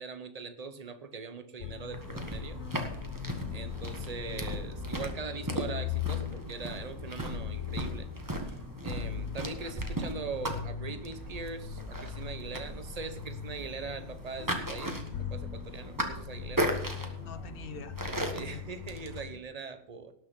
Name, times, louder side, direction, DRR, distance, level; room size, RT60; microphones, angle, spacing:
voice 1, 0.0-2.6 3.5-8.1 8.4-16.7 18.3-20.1, right 5 dB, 30° right, 10 dB, 0.9 m, -41 dB
sound 1, 1.6-19.4, left 11 dB, 65° left, 1.1 m, -40 dB
sound 2, 1.9-19.2, right 1 dB, 15° right, 1.3 m, -37 dB
voice 2, 16.6-18.6, left 4 dB, 45° left, 12 dB, 1.0 m, -46 dB
18.5 x 6.3 x 5.3 m, 0.73 s
omnidirectional pair, 1.5 m